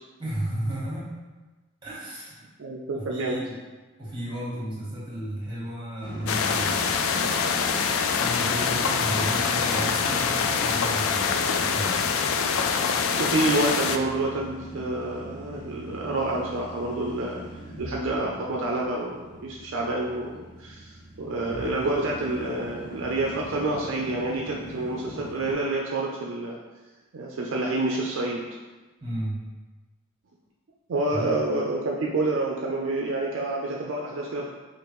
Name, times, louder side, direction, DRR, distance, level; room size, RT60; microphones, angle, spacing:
voice 1, 0.2-1.1 1.8-2.4 2.9-3.5 4.0-7.2 8.2-12.0 29.0-29.4 31.1-31.4, right 1 dB, 20° right, -6 dB, 1.2 m, -33 dB
voice 2, 2.6-3.4 13.2-17.4 17.8-20.9 21.2-26.6 27.1-28.5 30.9-34.5, right 2 dB, 60° right, -2 dB, 0.4 m, -28 dB
sound 1, 6.0-25.5, equal, 25° left, 1.0 m, -39 dB
sound 2, 6.3-14.0, left 6 dB, 70° left, 0.3 m, -25 dB
5.1 x 2.5 x 3.0 m, 1.2 s
head